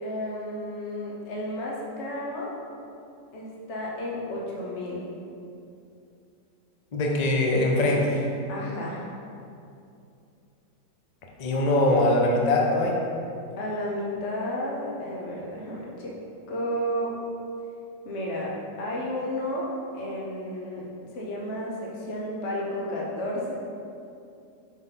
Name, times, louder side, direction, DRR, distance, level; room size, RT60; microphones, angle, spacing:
voice 1, 0.0-2.6 3.3-5.1 8.5-9.1 13.6-16.2 16.5-17.2 18.0-18.5 18.8-20.9 21.1-23.5, equal, 45° left, -4 dB, 1.1 m, -32 dB
voice 2, 6.9-8.2 11.4-13.0, left 1 dB, 65° left, -1 dB, 0.4 m, -22 dB
5.6 x 5.3 x 3.9 m, 2.6 s
omnidirectional pair, 1.9 m